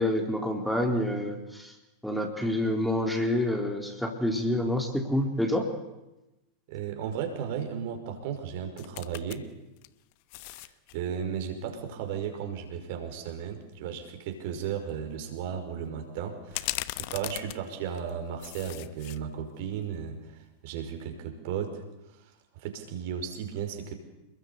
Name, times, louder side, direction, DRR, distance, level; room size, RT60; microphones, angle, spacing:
voice 1, 0.0-1.7 2.0-5.7, left 1 dB, ahead, 3 dB, 4.0 m, -28 dB
voice 2, 6.7-9.5 10.5-10.7 10.9-21.8 22.6-23.9, right 8 dB, 50° right, 5 dB, 5.3 m, -35 dB
sound 1, 8.8-9.4 9.8-11.0 13.6-13.7 14.1-14.3 16.5-18.1 18.4-19.2 19.6-19.7, left 20 dB, 45° left, 1.2 m, -37 dB
28.5 x 21.5 x 8.4 m, 0.97 s
figure-of-eight pair, 90°, 0 cm